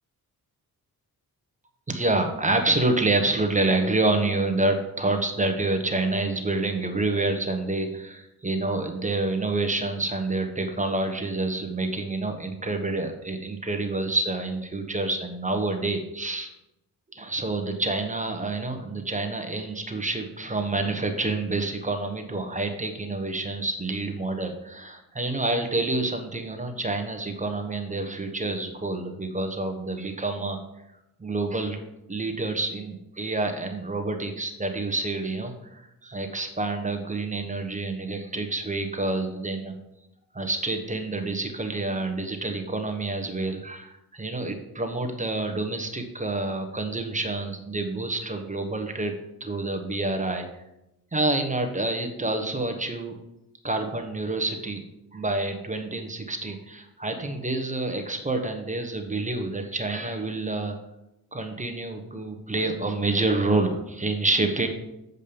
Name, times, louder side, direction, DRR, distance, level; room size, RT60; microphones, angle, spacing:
voice 1, 1.9-16.5 17.1-30.6 31.2-31.8 32.1-39.7 40.3-49.1 49.4-50.5 51.1-53.1 53.6-54.8 55.1-60.8 61.3-64.7, right 2 dB, 20° right, 5 dB, 1.2 m, -28 dB
7.4 x 5.3 x 6.9 m, 0.88 s
cardioid pair, 95°, 38 cm